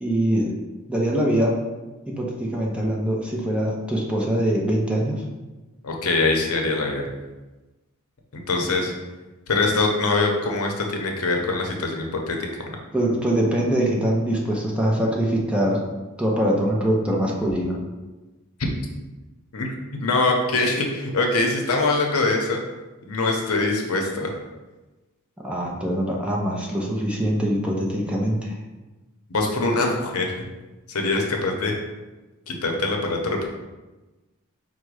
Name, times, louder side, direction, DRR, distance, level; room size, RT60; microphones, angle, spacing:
voice 1, 0.0-0.5 0.9-1.6 2.1-5.2 12.9-15.8 16.2-17.8 25.4-28.6, right 1 dB, 5° right, -3 dB, 0.6 m, -23 dB
voice 2, 5.8-7.1 8.3-8.9 9.5-12.4 12.7-12.8 19.5-19.7 20.0-22.6 23.1-24.3 29.3-30.4 30.9-31.8 32.5-33.5, left 3 dB, 80° left, 1 dB, 0.7 m, -23 dB
4.9 x 2.2 x 4.7 m, 1.1 s
head